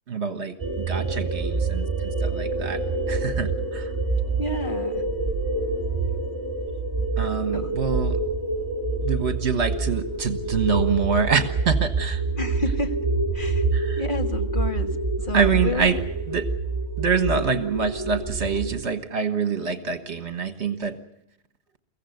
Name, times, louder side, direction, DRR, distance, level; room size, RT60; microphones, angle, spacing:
voice 1, 0.1-2.8 3.1-3.9 7.2-8.2 9.0-12.2 13.7-14.0 15.3-16.0 16.3-16.4 17.0-20.9, right 5 dB, 60° right, 9 dB, 1.7 m, -25 dB
sound 1, 0.6-18.8, right 3 dB, 15° right, 4.8 m, -27 dB
voice 2, 4.4-5.0 7.5-7.8 12.4-13.0 13.3-13.7 14.0-16.0, left 2 dB, 40° left, 5 dB, 1.7 m, -30 dB
23.0 x 16.0 x 9.3 m, 0.86 s
omnidirectional pair, 1.3 m